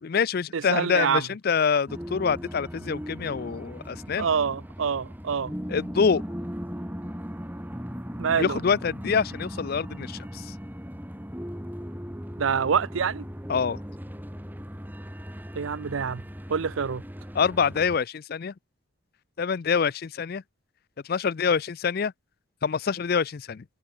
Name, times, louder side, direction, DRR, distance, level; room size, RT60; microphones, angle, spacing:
voice 1, 0.0-4.3 5.7-6.2 8.4-10.5 13.5-13.8 17.3-18.5 19.4-20.4 21.0-22.1 22.6-23.6, left 6 dB, 50° left, 0.4 m, -26 dB
voice 2, 0.5-1.2 4.2-5.5 8.2-8.6 12.4-13.3 15.6-16.2 16.5-17.0, right 6 dB, 75° right, 0.5 m, -26 dB
sound 1, 1.9-18.0, equal, 10° right, 5.7 m, -38 dB
head